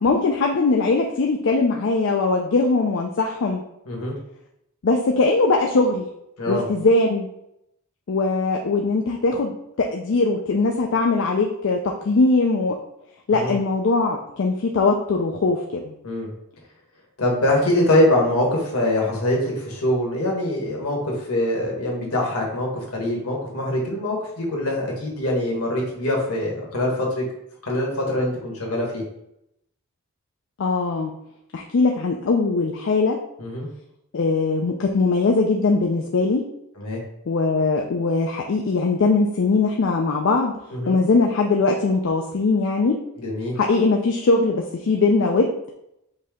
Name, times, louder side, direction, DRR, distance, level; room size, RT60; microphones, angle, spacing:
voice 1, 0.0-3.6 4.8-6.1 6.5-7.3 8.1-12.8 13.3-15.9 30.6-31.1 31.5-33.2 34.1-36.4 37.3-40.6 40.9-43.0 43.6-45.5, left 3 dB, 55° left, 1 dB, 0.4 m, -21 dB
voice 2, 17.2-27.2 27.6-29.0 33.4-33.7 36.8-37.0 40.7-40.9 43.2-43.5, left 1 dB, 75° left, -2 dB, 1.5 m, -23 dB
5.3 x 2.8 x 3.6 m, 0.80 s
head